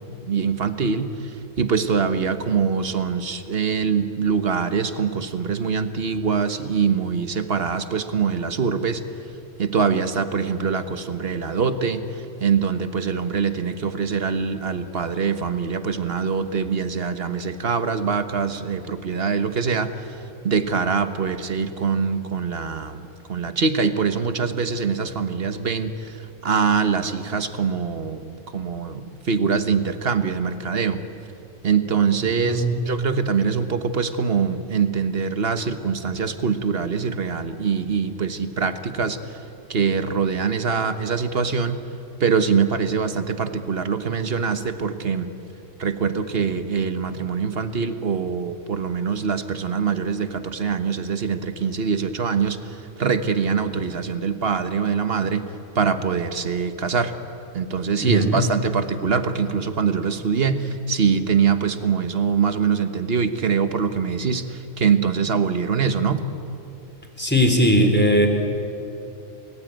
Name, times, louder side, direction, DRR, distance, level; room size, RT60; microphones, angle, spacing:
voice 1, 0.2-9.0 9.6-20.2 20.4-31.0 31.6-39.4 39.7-41.8 42.2-45.3 45.8-55.4 55.7-57.1 57.5-66.2, right 6 dB, 50° right, 9 dB, 1.4 m, -23 dB
voice 2, 32.4-32.8 58.0-58.4 67.2-68.3, equal, 10° left, 4 dB, 3.4 m, -19 dB
29.0 x 20.5 x 9.1 m, 2.8 s
omnidirectional pair, 1.3 m